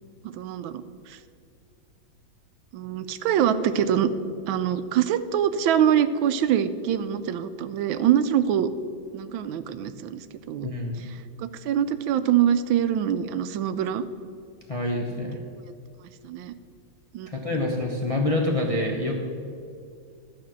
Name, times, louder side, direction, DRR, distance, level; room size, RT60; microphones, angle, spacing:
voice 1, 0.3-0.8 1.1-1.2 2.7-4.1 4.5-8.7 9.1-10.7 11.4-14.0 16.2-16.5 17.1-17.3, right 9 dB, 90° right, 12 dB, 1.4 m, -24 dB
voice 2, 10.6-11.1 14.7-15.4 17.3-19.2, left 1 dB, 30° left, 0 dB, 0.6 m, -26 dB
11.5 x 5.1 x 7.5 m, 2.4 s
omnidirectional pair, 2.1 m